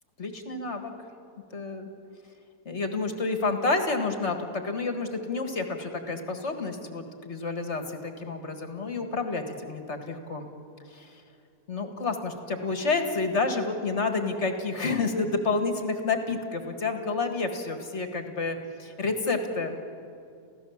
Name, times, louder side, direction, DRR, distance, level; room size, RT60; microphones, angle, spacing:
voice 1, 0.2-0.9 1.5-1.9 2.7-10.5 10.9-11.1 11.7-19.8, left 3 dB, 45° left, 6 dB, 2.0 m, -29 dB
29.0 x 15.5 x 7.2 m, 2.6 s
omnidirectional pair, 1.7 m